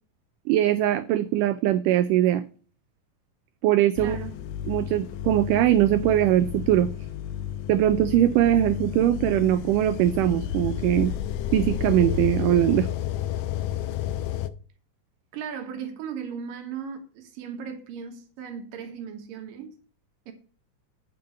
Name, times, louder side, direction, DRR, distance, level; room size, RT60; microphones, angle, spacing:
voice 1, 0.5-2.4 3.6-4.2 4.7-6.9 7.7-11.1 11.5-12.9, right 12 dB, 90° right, 1.8 m, -21 dB
sound 1, 4.0-14.5, left 11 dB, 90° left, 1.8 m, -31 dB
voice 2, 4.0-4.4 15.3-19.7 20.3-20.4, right 7 dB, 70° right, 2.8 m, -37 dB
9.4 x 5.3 x 5.4 m
omnidirectional pair, 4.3 m